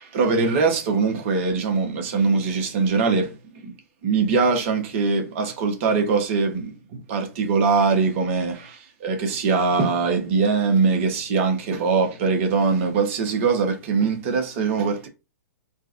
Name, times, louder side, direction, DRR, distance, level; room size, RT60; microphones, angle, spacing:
voice 1, 0.1-3.4 3.6-3.7 4.0-15.1, right 4 dB, 45° right, 1.1 m, -22 dB
3.8 x 2.3 x 2.5 m
hypercardioid pair, 120°, 9 cm